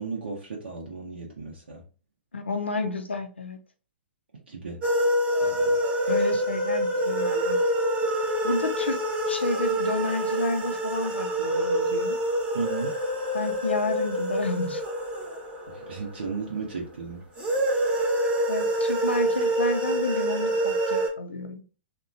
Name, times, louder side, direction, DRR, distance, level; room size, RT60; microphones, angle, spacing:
voice 1, 0.0-1.8 4.5-4.8 5.4-5.8 12.5-12.9 15.7-17.2, right 4 dB, 70° right, 0.6 m, -35 dB
voice 2, 2.3-3.6 6.1-7.6 8.4-9.0 9.3-12.2 13.3-14.8 18.5-21.6, left 2 dB, 80° left, 0.4 m, -30 dB
sound 1, 4.8-16.6 17.4-21.1, right 1 dB, 20° right, 0.7 m, -26 dB
2.8 x 2.2 x 2.5 m
figure-of-eight pair, 110°, 6 cm